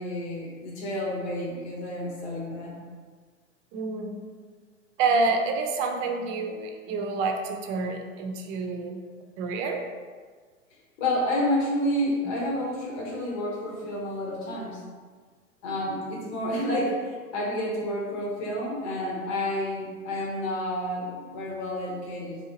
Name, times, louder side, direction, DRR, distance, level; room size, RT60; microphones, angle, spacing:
voice 1, 0.0-2.8 11.0-14.8 15.6-22.4, left 1 dB, 50° left, -4 dB, 1.3 m, -30 dB
voice 2, 3.7-4.2 5.0-9.0 9.4-9.8, right 3 dB, 35° right, 4 dB, 0.6 m, -28 dB
4.6 x 3.3 x 2.9 m, 1.5 s
hypercardioid pair, 105°, 41 cm